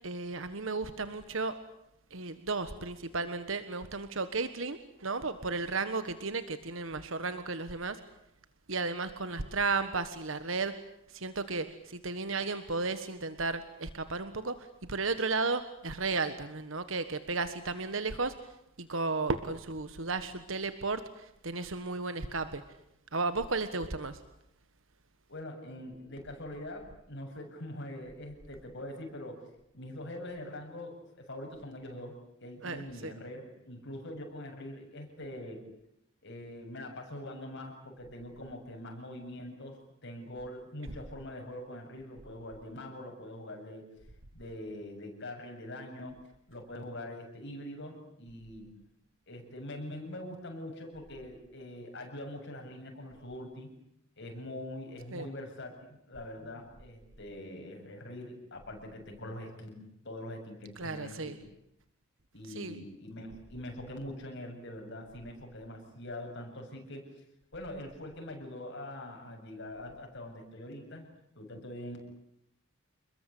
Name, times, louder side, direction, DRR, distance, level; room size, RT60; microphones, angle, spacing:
voice 1, 0.0-1.6 2.1-8.0 8.7-10.7 11.1-14.5 14.9-18.3 18.8-22.6 23.1-24.2 32.6-33.1 55.1-55.3 60.7-61.4 62.4-62.8, right 3 dB, 70° right, 11 dB, 1.5 m, -34 dB
voice 2, 25.3-29.4 29.7-35.6 36.2-43.9 44.3-48.7 49.3-53.7 54.2-61.5 62.3-67.1 67.5-72.0, left 1 dB, 60° left, 3 dB, 7.4 m, -43 dB
28.5 x 21.5 x 8.5 m, 0.79 s
head